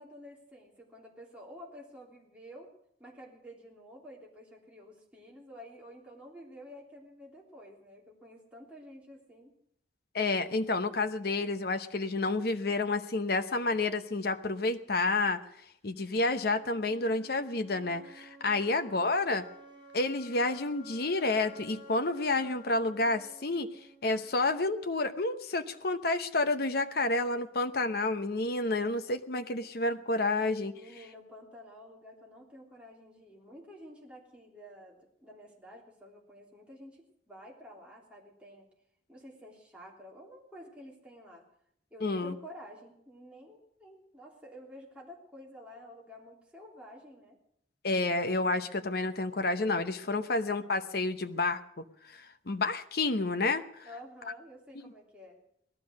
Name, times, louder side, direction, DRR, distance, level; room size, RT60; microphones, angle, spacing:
voice 1, 0.0-2.7 3.0-9.5 30.7-38.7 39.1-41.4 41.9-47.4 53.8-55.4, equal, 5° right, -3 dB, 3.2 m, -51 dB
voice 2, 10.1-15.4 15.8-19.5 19.9-23.7 24.0-30.7 42.0-42.3 47.8-53.9, left 2 dB, 60° left, 8 dB, 0.9 m, -30 dB
sound 1, 16.5-24.5, equal, 30° right, 4.7 m, -53 dB
18.0 x 12.5 x 6.4 m, 0.72 s
head